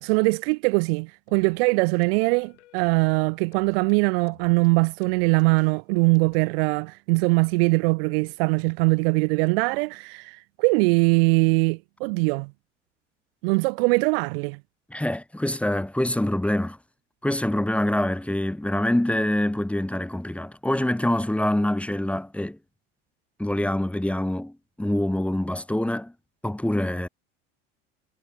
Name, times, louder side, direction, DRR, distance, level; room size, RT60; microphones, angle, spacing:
voice 1, 0.0-12.5 13.4-14.6, right 31 dB, 55° right, 0.5 m, -22 dB
sound 1, 1.3-6.5, left 16 dB, 75° left, 2.7 m, -56 dB
voice 2, 14.9-16.8 17.2-22.6 23.4-24.5 24.8-26.1 26.4-27.1, left 1 dB, 5° left, 1.1 m, -25 dB
hypercardioid pair, 75°, 36 cm